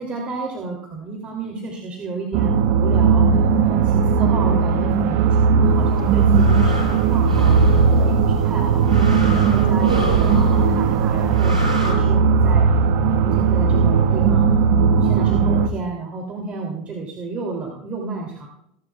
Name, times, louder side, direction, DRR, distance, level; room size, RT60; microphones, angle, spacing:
voice 1, 0.0-12.7 13.1-14.5 14.8-18.5, right 4 dB, 30° right, 0 dB, 2.9 m, -31 dB
sound 1, 2.3-15.7, right 5 dB, 60° right, 1.4 m, -17 dB
sound 2, 5.9-11.9, right 2 dB, 90° right, 5.2 m, -26 dB
24.0 x 11.5 x 2.4 m, 0.76 s
hypercardioid pair, 90°, 4 cm